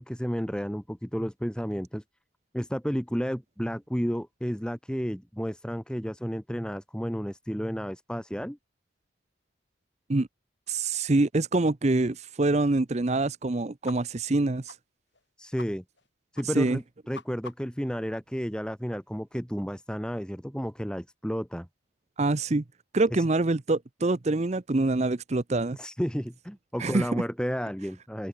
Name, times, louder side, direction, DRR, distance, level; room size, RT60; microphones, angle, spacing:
voice 1, 0.0-2.0 2.5-8.6 15.4-15.8 16.3-21.7 23.1-23.3 25.7-28.3, equal, 5° left, 4.4 m, -32 dB
voice 2, 10.7-14.8 16.4-16.8 22.2-22.6 22.9-25.8 26.8-27.2, right 2 dB, 35° right, 0.6 m, -25 dB
sound 1, 13.8-14.0 14.2-14.4 14.7-14.8 15.1-15.2 15.6-15.7 15.9-16.1 16.3-16.5 16.8-17.8, left 4 dB, 60° left, 5.2 m, -44 dB
open air
head